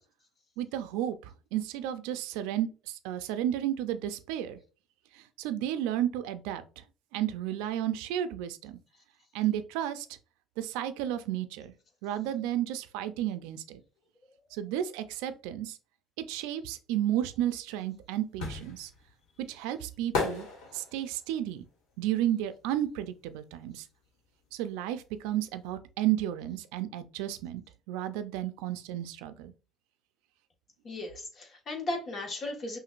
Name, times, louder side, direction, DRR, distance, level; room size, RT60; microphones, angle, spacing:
voice 1, 0.6-4.6 5.1-6.8 7.1-8.8 9.3-10.1 10.6-11.7 12.0-13.8 14.5-15.8 16.3-18.9 19.5-20.5 20.7-21.6 22.0-23.8 24.5-27.6 27.9-29.5, right 12 dB, 85° right, 0.5 m, -32 dB
sound 1, 17.5-23.4 23.6-25.2 25.5-25.6, left 4 dB, 80° left, 1.4 m, -37 dB
voice 2, 30.8-32.8, left 2 dB, 45° left, 1.5 m, -36 dB
5.8 x 2.6 x 2.5 m
supercardioid pair, 85°, 0 cm